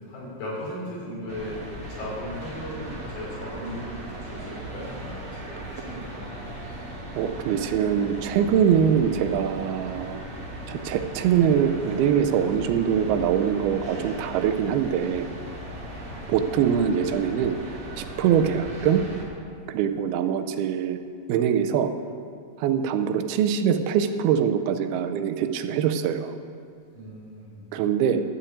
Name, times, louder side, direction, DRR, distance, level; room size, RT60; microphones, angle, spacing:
voice 1, 0.0-1.6 1.9-6.5 16.0-16.2 26.9-27.6, left 1 dB, 85° left, -6 dB, 5.7 m, -37 dB
sound 1, 1.3-19.2, right 1 dB, 55° right, 0.9 m, -38 dB
voice 2, 7.2-10.2 10.7-15.3 16.3-17.5 18.0-19.0 19.7-21.0 21.3-21.9 22.6-26.4 27.7-28.2, right 8 dB, 90° right, 7 dB, 2.6 m, -23 dB
12.0 x 5.7 x 8.5 m, 2.2 s
omnidirectional pair, 4.3 m